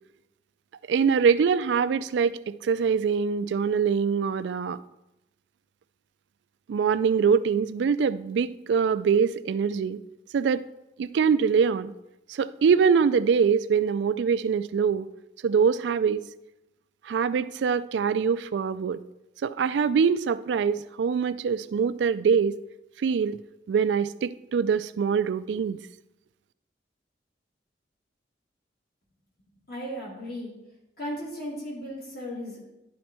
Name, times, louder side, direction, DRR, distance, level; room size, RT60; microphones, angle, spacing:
voice 1, 0.9-4.8 6.7-10.0 10.3-10.7 11.0-11.9 12.3-15.1 15.4-16.2 17.0-19.0 19.4-22.6 23.0-23.4 23.7-25.8, right 6 dB, 75° right, 14 dB, 0.3 m, -24 dB
voice 2, 29.7-30.5 31.0-32.6, equal, 55° left, -5 dB, 3.0 m, -35 dB
10.5 x 4.3 x 4.4 m, 0.91 s
head